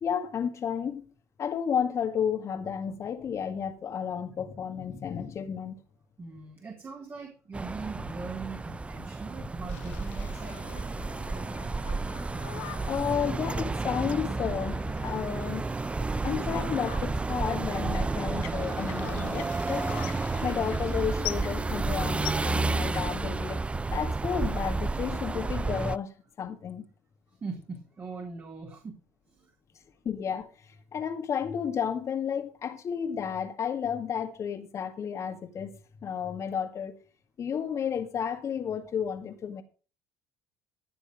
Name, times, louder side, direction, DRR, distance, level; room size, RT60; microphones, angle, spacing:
voice 1, 0.0-1.1 1.4-5.8 12.9-15.7 16.2-19.9 20.4-23.6 23.9-26.9 30.0-37.0 37.4-39.6, left 7 dB, 45° left, 2.1 m, -32 dB
voice 2, 6.2-10.8 27.4-29.0 29.3-29.5, right 4 dB, 35° right, 3.6 m, -41 dB
sound 1, 7.5-26.0, right 3 dB, 15° right, 0.6 m, -31 dB
sound 2, 9.7-23.0, left 13 dB, 75° left, 1.3 m, -44 dB
15.5 x 7.2 x 5.2 m
hypercardioid pair, 65°, 7 cm